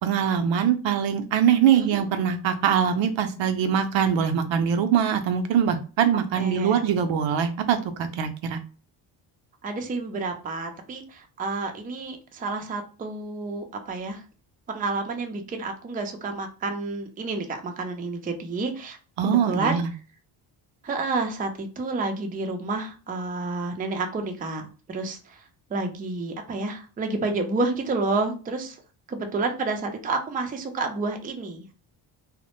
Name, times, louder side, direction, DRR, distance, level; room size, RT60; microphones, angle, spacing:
voice 1, 0.0-8.6 19.2-19.9, right 8 dB, 65° right, 8 dB, 0.6 m, -23 dB
voice 2, 6.4-6.8 9.6-14.2 14.7-19.0 19.2-19.7 20.8-25.4 25.7-28.8 29.1-31.7, right 3 dB, 20° right, 4 dB, 0.4 m, -30 dB
2.1 x 2.1 x 2.9 m, 0.36 s
cardioid pair, 75°, 49 cm